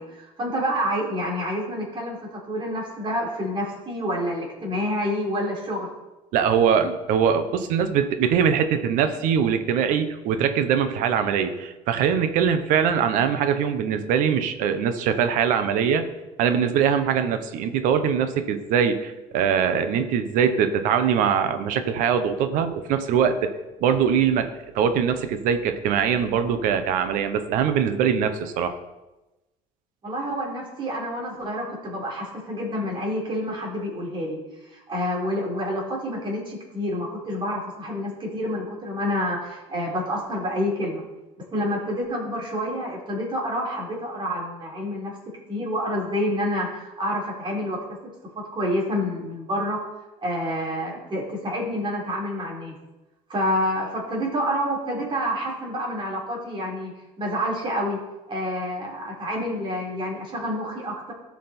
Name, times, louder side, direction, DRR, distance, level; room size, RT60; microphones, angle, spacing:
voice 1, 0.0-5.9 30.0-34.4 34.7-41.0 41.5-45.1 45.5-48.0 48.4-49.8 50.2-52.8 53.3-58.0 58.3-61.1, equal, 35° right, -3 dB, 3.8 m, -28 dB
voice 2, 6.3-16.0 16.4-23.5 23.8-28.8, right 7 dB, 75° right, 10 dB, 1.1 m, -22 dB
14.0 x 6.0 x 4.4 m, 1.0 s
supercardioid pair, 95°, 14 cm